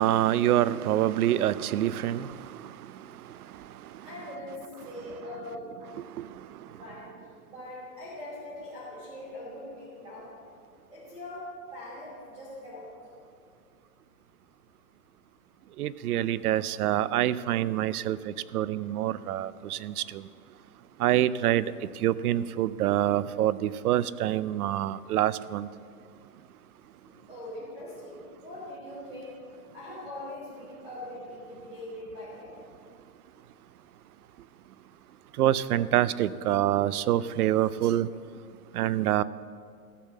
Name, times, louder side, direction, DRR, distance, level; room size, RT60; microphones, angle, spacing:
voice 1, 0.0-2.3 15.8-18.2 18.5-20.0 21.0-21.7 22.0-25.7 35.4-38.1 38.8-39.2, right 12 dB, 70° right, 0.6 m, -26 dB
voice 2, 4.0-5.7 6.6-7.1 7.5-10.3 10.9-12.9 27.0-29.4 29.7-32.6, left 1 dB, 10° right, 3.0 m, -42 dB
14.0 x 5.7 x 7.3 m
hypercardioid pair, 170°, 46 cm